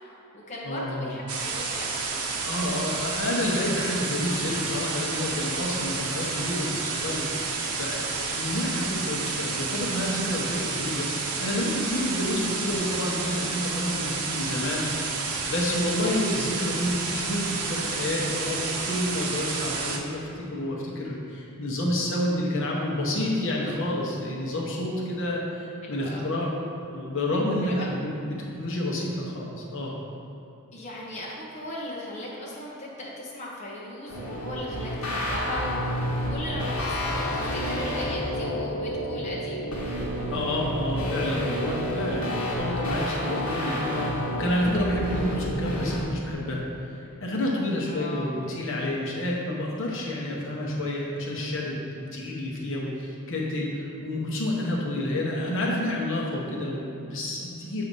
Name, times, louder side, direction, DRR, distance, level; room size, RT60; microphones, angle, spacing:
voice 1, 0.1-1.9 25.8-26.3 27.6-27.9 30.7-39.6 47.9-48.3, left 1 dB, 30° left, -5 dB, 0.8 m, -38 dB
voice 2, 0.6-1.1 2.4-7.5 7.7-26.5 26.8-29.9 40.3-46.6 47.2-57.8, left 1 dB, 60° left, -3 dB, 0.9 m, -29 dB
sound 1, 1.3-20.0, right 4 dB, 85° right, 0.7 m, -30 dB
sound 2, 34.1-46.0, equal, 75° left, 1.2 m, -29 dB
7.3 x 2.8 x 5.3 m, 3.0 s
head